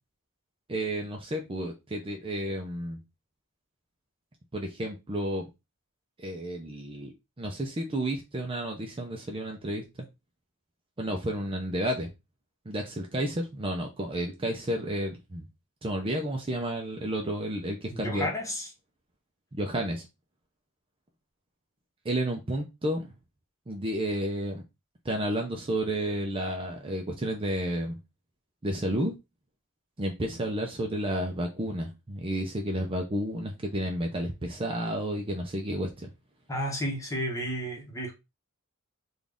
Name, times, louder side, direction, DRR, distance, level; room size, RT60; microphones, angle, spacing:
voice 1, 0.7-3.0 4.5-5.5 6.2-7.1 7.4-9.8 11.0-12.1 12.7-15.5 15.8-18.3 19.5-20.1 22.0-23.1 23.7-24.6 25.0-28.0 28.6-29.1 30.0-36.1, right 1 dB, 25° right, 0.6 m, -31 dB
voice 2, 17.9-18.7 36.5-38.1, equal, 15° left, 1.1 m, -32 dB
3.9 x 2.5 x 3.4 m
head